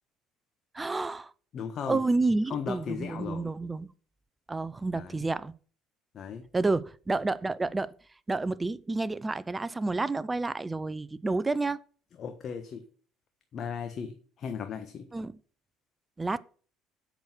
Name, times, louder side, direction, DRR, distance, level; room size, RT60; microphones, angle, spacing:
voice 1, 0.7-1.3 1.9-3.9 4.5-5.5 6.5-7.9 8.3-11.8 15.1-15.4 16.2-16.4, right 3 dB, 20° right, 0.7 m, -29 dB
voice 2, 1.5-2.0 2.5-3.5 4.9-5.2 6.1-6.4 12.2-12.8 13.5-15.1, left 7 dB, 50° left, 1.3 m, -36 dB
8.2 x 6.6 x 6.1 m
hypercardioid pair, 70°, 0 cm